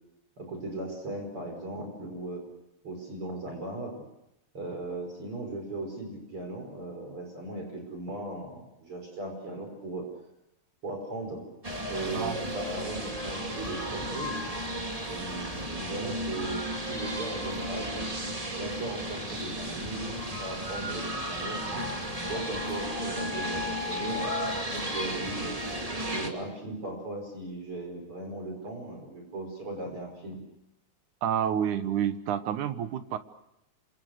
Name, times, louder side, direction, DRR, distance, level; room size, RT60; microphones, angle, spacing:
voice 1, 0.4-2.4 2.8-4.0 4.5-10.0 10.8-11.4 11.9-14.4 15.1-18.1 18.6-21.9 22.2-24.3 24.7-25.6 26.1-30.4, right 2 dB, 45° right, 2 dB, 6.0 m, -37 dB
sound 1, 11.6-26.3, equal, 15° right, 2.4 m, -34 dB
voice 2, 31.2-33.2, right 9 dB, 85° right, 11 dB, 2.7 m, -29 dB
28.0 x 26.5 x 6.5 m, 0.84 s
omnidirectional pair, 3.4 m